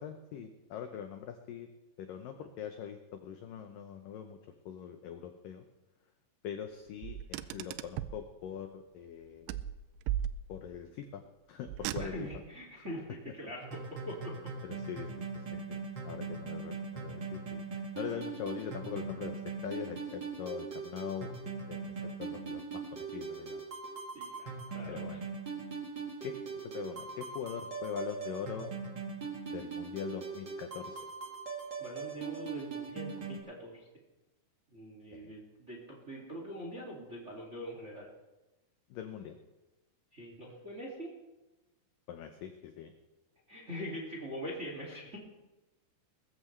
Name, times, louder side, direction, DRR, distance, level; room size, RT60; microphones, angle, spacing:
voice 1, 0.0-1.7 2.0-4.4 4.7-5.7 6.4-9.6 10.5-11.2 11.5-12.1 14.6-15.1 15.3-21.9 22.2-23.6 24.9-25.2 26.2-28.7 29.5-31.0 35.1-35.3 38.9-39.4 42.1-42.9, left 8 dB, 80° left, 6 dB, 2.0 m, -42 dB
Car, 7.0-8.3 9.5-10.8 11.7-12.5, right 11 dB, 85° right, 2.7 m, -37 dB
voice 2, 12.0-14.4 24.1-25.2 31.8-33.8 34.7-38.1 40.1-41.2 43.5-45.2, equal, 25° right, -1 dB, 1.8 m, -43 dB
sound 1, 13.6-33.4, right 5 dB, 65° right, 1.0 m, -41 dB
21.5 x 14.0 x 3.3 m, 1.1 s
omnidirectional pair, 5.0 m